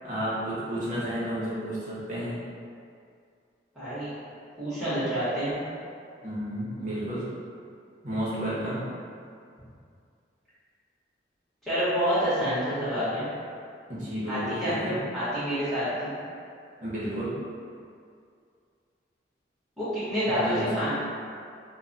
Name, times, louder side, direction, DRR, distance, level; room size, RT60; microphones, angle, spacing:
voice 1, 0.0-2.4 6.2-7.3 8.0-8.8 13.9-14.9 16.8-17.4 20.3-20.9, right 1 dB, 40° right, -9 dB, 0.8 m, -31 dB
voice 2, 3.7-4.1 4.6-5.6 11.7-13.2 14.3-16.1 19.8-20.9, equal, ahead, -15 dB, 1.0 m, -28 dB
2.2 x 2.2 x 3.8 m, 2.3 s
head